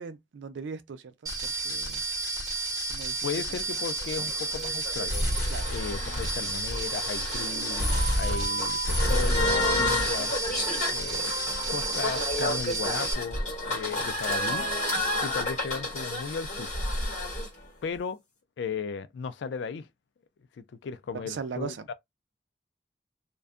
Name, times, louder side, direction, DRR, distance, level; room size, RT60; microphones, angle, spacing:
voice 1, 0.0-2.0 2.9-3.3 5.5-6.6 21.1-21.9, right 5 dB, 85° right, 0.4 m, -40 dB
sound 1, 1.3-13.1, right 1 dB, 20° right, 1.0 m, -30 dB
voice 2, 3.2-5.2 5.7-7.8 8.2-10.3 10.9-13.4 13.7-14.7 15.2-16.7 17.8-18.2 18.6-19.9 20.6-21.9, left 5 dB, 75° left, 0.3 m, -36 dB
sound 2, 3.8-17.5, left 1 dB, 40° left, 1.4 m, -31 dB
2.5 x 2.2 x 2.4 m
head